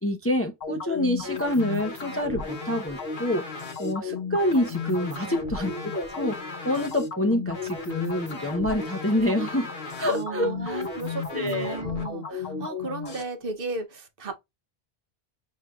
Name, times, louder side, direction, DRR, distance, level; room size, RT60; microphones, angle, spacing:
voice 1, 0.0-3.5 3.8-6.4 6.6-9.7 10.0-10.9 11.3-11.8, left 1 dB, 20° left, 0.5 m, -27 dB
sound 1, 0.6-13.2, left 4 dB, 65° left, 1.5 m, -34 dB
voice 2, 5.0-5.6 10.1-14.3, right 3 dB, 60° right, 1.0 m, -35 dB
6.4 x 3.3 x 2.3 m
omnidirectional pair, 1.1 m